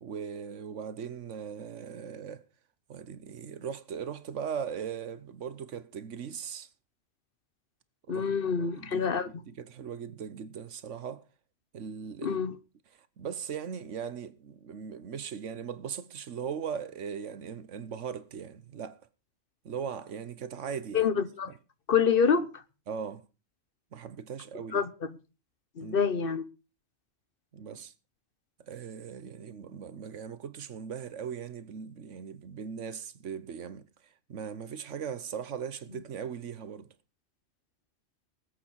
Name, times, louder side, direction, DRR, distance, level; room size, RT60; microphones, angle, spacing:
voice 1, 0.0-2.4 2.9-6.7 8.1-11.3 11.7-12.4 12.9-19.0 19.6-21.1 22.9-23.3 23.9-24.9 25.8-26.0 27.5-27.9 28.6-36.9, right 7 dB, 85° right, 1.3 m, -39 dB
voice 2, 8.1-9.3 12.2-12.5 20.9-21.5 21.9-22.5 24.7-25.1 25.8-26.4, left 6 dB, 50° left, 1.0 m, -26 dB
19.0 x 8.3 x 4.6 m
omnidirectional pair, 1.2 m